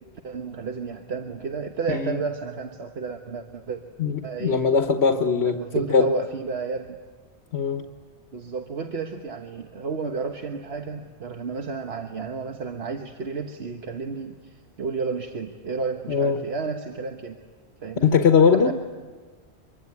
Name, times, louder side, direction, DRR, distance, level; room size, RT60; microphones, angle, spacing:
voice 1, 0.2-3.8 4.2-4.6 5.4-7.0 8.3-17.4 17.8-18.7, right 4 dB, 75° right, 4 dB, 1.6 m, -32 dB
voice 2, 4.0-5.6 5.9-6.1 7.5-7.8 16.1-16.4 18.0-18.7, left 6 dB, 85° left, 6 dB, 1.5 m, -20 dB
24.5 x 24.5 x 9.6 m, 1.5 s
omnidirectional pair, 1.1 m